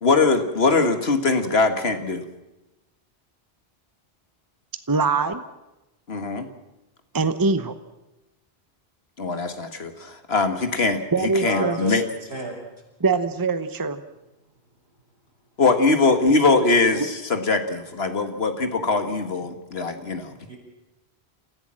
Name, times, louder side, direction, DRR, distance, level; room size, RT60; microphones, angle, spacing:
voice 1, 0.0-2.2 6.1-6.5 9.2-12.0 15.6-20.3, left 3 dB, 70° left, 8 dB, 1.9 m, -22 dB
voice 2, 4.9-5.4 7.1-7.7 11.1-11.8 13.0-14.0 17.0-17.1, right 4 dB, 20° right, 10 dB, 0.9 m, -23 dB
voice 3, 11.4-12.6 20.5-20.6, right 2 dB, 80° right, 0 dB, 6.1 m, -30 dB
28.0 x 15.0 x 7.6 m, 0.99 s
omnidirectional pair, 1.1 m